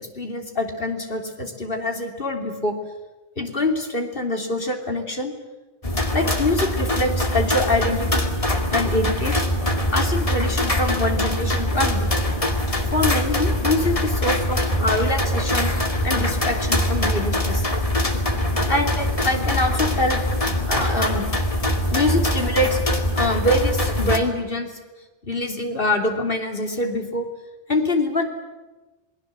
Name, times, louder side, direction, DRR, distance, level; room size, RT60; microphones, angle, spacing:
voice 1, 0.0-2.8 3.4-5.3 6.1-8.3 8.7-9.4 9.9-12.1 12.9-15.7 16.0-17.7 18.7-20.2 20.7-21.2 21.9-22.8 23.1-24.7 25.2-27.3 27.7-28.2, left 2 dB, 55° left, 3 dB, 3.4 m, -24 dB
sound 1, 5.8-24.2, left 1 dB, 30° left, 2.4 m, -23 dB
27.5 x 20.5 x 7.7 m, 1.2 s
omnidirectional pair, 1.1 m